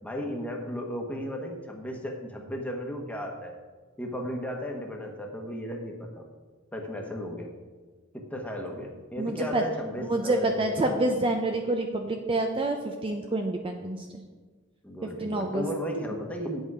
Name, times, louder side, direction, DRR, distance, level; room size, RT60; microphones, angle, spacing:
voice 1, 0.0-3.6 4.0-6.3 6.7-7.5 8.1-11.0 14.8-16.6, equal, 5° left, 1 dB, 1.2 m, -35 dB
voice 2, 9.2-9.7 10.0-14.1 15.2-15.7, right 2 dB, 25° right, 3 dB, 0.6 m, -27 dB
9.1 x 8.0 x 4.9 m, 1.4 s
head